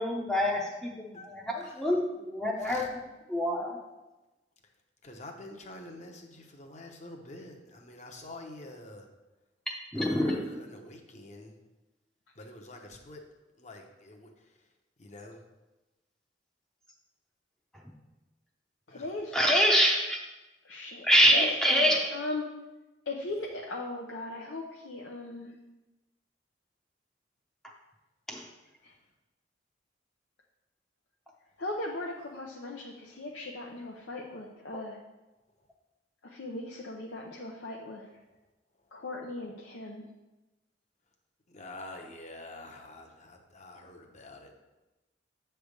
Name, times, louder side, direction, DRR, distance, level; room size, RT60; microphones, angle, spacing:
voice 1, 0.0-3.8 9.9-10.5 19.3-20.2 21.0-22.0 28.3-28.4, equal, 5° left, -2 dB, 0.7 m, -26 dB
voice 2, 5.0-9.0 10.0-11.5 12.4-13.2 13.6-14.3 15.0-15.4 18.9-19.0 41.5-44.6, left 2 dB, 40° left, 2 dB, 0.9 m, -46 dB
voice 3, 18.9-19.4 20.6-22.5 23.1-25.6 28.8-28.9 31.6-35.0 36.2-38.0 38.9-40.0, left 2 dB, 85° left, -2 dB, 0.7 m, -38 dB
8.0 x 3.4 x 6.5 m, 1.1 s
head